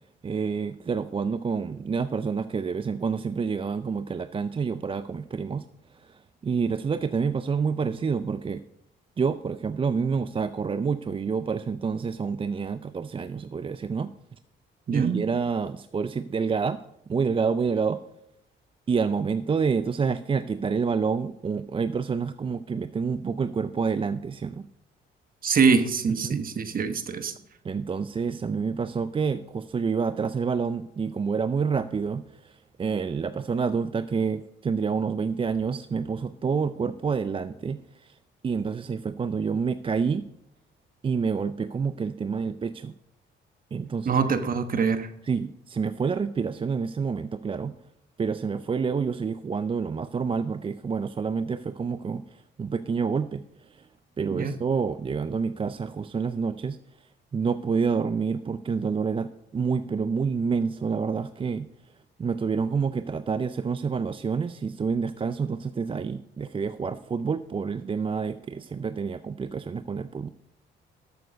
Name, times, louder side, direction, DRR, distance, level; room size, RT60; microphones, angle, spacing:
voice 1, 0.2-5.7 5.9-8.6 9.2-14.1 14.9-18.0 18.9-24.7 26.2-26.4 27.6-38.2 38.4-40.3 41.0-42.9 43.7-44.2 45.2-47.8 48.2-53.9 54.2-61.7 62.2-70.3, right 5 dB, 25° right, 12 dB, 0.4 m, -28 dB
voice 2, 14.9-15.2 25.4-27.3 44.0-45.1 54.3-54.6, right 5 dB, 45° right, 9 dB, 1.2 m, -24 dB
13.0 x 6.9 x 5.2 m, 0.80 s
cardioid pair, 90°, 20 cm